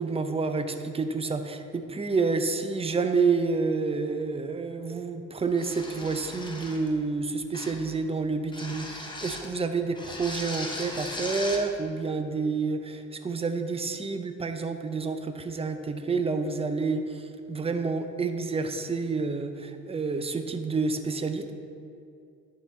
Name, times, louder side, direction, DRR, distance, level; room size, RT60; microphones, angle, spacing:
voice 1, 0.0-21.5, right 4 dB, 20° right, 7 dB, 0.5 m, -29 dB
sound 1, 5.5-6.9 7.5-7.9 8.5-9.5 9.9-11.7, left 1 dB, 15° left, 1.0 m, -38 dB
10.5 x 3.8 x 4.2 m, 2.5 s
cardioid pair, 90°, 30 cm